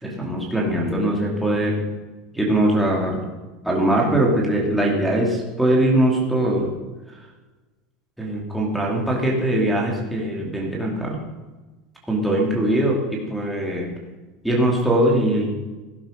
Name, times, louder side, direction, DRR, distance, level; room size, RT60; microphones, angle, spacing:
voice 1, 0.0-1.8 2.3-3.2 3.6-6.7 8.2-11.2 12.1-13.9 14.4-15.5, right 1 dB, ahead, -3 dB, 3.0 m, -21 dB
16.5 x 11.5 x 5.3 m, 1.2 s
supercardioid pair, 170°, 0 cm